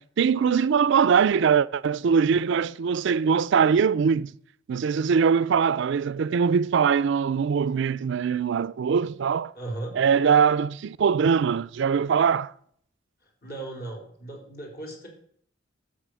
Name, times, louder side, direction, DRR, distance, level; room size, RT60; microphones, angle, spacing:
voice 1, 0.0-4.3 4.7-9.5 9.9-12.5, right 6 dB, 65° right, 0.4 m, -22 dB
voice 2, 9.5-10.0 13.4-15.1, right 2 dB, 50° left, 4.6 m, -36 dB
12.5 x 6.9 x 8.2 m
head